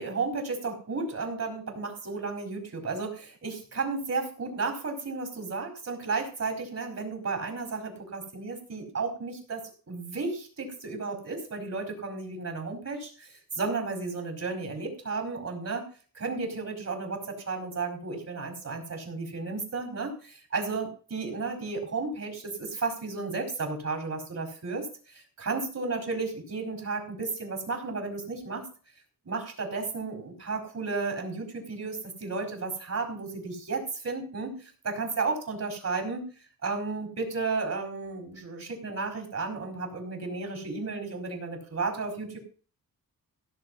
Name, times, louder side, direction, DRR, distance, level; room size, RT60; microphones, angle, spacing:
voice 1, 0.0-15.9 16.1-28.7 29.2-36.3 36.6-42.4, right 4 dB, 45° right, 3 dB, 4.8 m, -33 dB
16.5 x 7.1 x 5.5 m, 0.39 s
wide cardioid pair, 115°, 36 cm